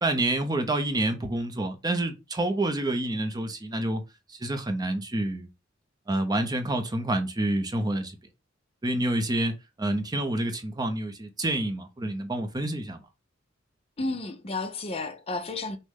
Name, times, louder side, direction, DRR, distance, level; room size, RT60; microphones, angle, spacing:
voice 1, 0.0-4.0 4.3-5.5 6.1-8.2 8.8-9.5 9.8-13.0, right 1 dB, 20° right, 0.6 m, -28 dB
voice 2, 14.0-15.8, left 2 dB, 30° left, 0.6 m, -32 dB
6.2 x 2.2 x 3.6 m
head